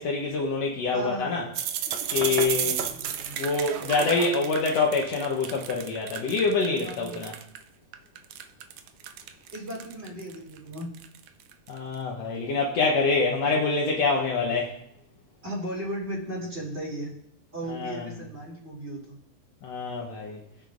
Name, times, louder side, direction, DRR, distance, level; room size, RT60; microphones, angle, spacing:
voice 1, 0.0-1.4 2.1-2.8 3.4-7.3 11.7-14.7 17.7-18.1 19.6-20.4, left 4 dB, 65° left, -1 dB, 1.9 m, -26 dB
voice 2, 0.9-1.3 2.1-3.3 6.7-7.2 9.5-10.9 15.4-17.1 17.5-19.1, right 1 dB, 20° right, -4 dB, 3.6 m, -36 dB
sound 1, 1.6-7.6 7.9-11.8, right 9 dB, 75° right, 1.7 m, -32 dB
20.5 x 8.7 x 2.6 m, 0.72 s
omnidirectional pair, 3.6 m